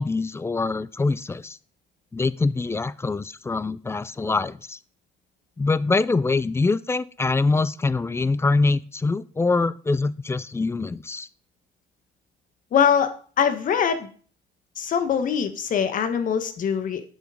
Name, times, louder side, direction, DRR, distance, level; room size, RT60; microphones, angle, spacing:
voice 1, 0.0-1.6 2.1-4.8 5.6-11.3, left 3 dB, 15° left, 19 dB, 0.4 m, -24 dB
voice 2, 12.7-14.1 14.8-17.1, left 7 dB, 50° left, 9 dB, 1.4 m, -23 dB
8.5 x 6.4 x 5.0 m, 0.42 s
cardioid pair, 110°, 17 cm